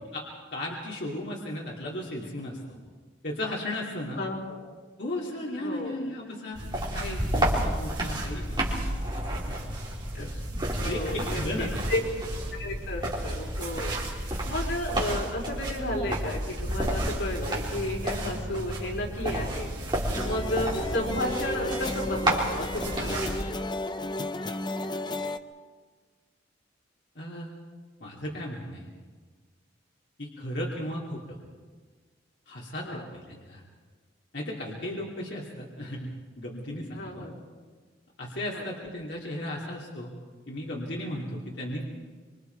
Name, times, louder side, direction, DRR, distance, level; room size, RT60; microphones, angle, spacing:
voice 1, 0.5-2.6 3.2-4.2 5.0-6.6 6.9-9.6 10.2-10.3 10.8-11.7 27.1-27.5 28.0-28.9 30.2-31.4 32.5-33.6 34.3-36.1 36.4-37.3 38.2-40.1 40.5-41.8, left 1 dB, 60° left, -4 dB, 2.8 m, -35 dB
voice 2, 4.1-4.6 5.6-5.9 7.5-7.6 10.1-10.3 10.8-12.0 12.5-14.2 14.5-19.7 20.2-23.3 32.8-33.0 36.9-37.3 38.5-38.7, left 1 dB, 85° left, -1 dB, 4.6 m, -33 dB
sound 1, 6.5-23.4, right 1 dB, 25° right, 3.8 m, -31 dB
sound 2, 20.1-25.4, left 2 dB, 25° left, 0.7 m, -33 dB
25.5 x 25.0 x 4.6 m, 1.5 s
head